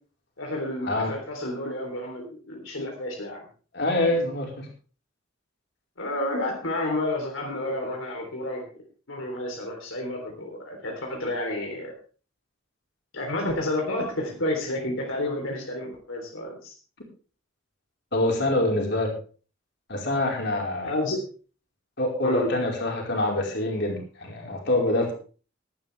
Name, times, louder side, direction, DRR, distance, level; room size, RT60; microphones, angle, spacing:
voice 1, 0.4-3.5 6.0-8.7 9.1-11.9 13.1-16.7 20.8-21.2 22.2-22.5, left 1 dB, 85° left, 1 dB, 3.7 m, -30 dB
voice 2, 3.7-4.7 18.1-19.1 19.9-20.9 22.0-25.1, left 1 dB, 60° left, 0 dB, 4.7 m, -25 dB
17.5 x 11.5 x 3.5 m, 0.38 s
head